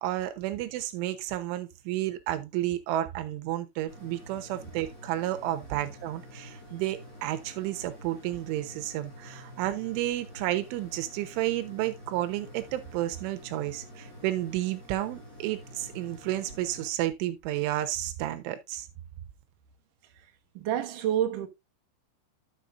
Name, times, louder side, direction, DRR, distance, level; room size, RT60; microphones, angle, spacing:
voice 1, 0.0-18.9, right 14 dB, 85° right, 3.5 m, -31 dB
sound 1, 3.9-16.9, equal, 15° left, 5.1 m, -48 dB
voice 2, 20.1-21.5, right 10 dB, 65° right, 2.2 m, -30 dB
11.0 x 7.1 x 2.6 m
omnidirectional pair, 5.4 m